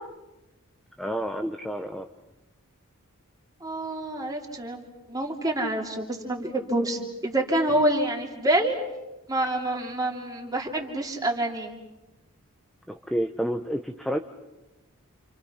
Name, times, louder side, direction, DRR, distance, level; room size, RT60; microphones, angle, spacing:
voice 1, 1.0-2.1 12.9-14.2, equal, ahead, 5 dB, 0.8 m, -29 dB
voice 2, 3.6-4.8 5.1-8.8 9.3-11.7, right 1 dB, 15° right, 1 dB, 3.0 m, -27 dB
29.5 x 28.0 x 5.8 m, 1.0 s
head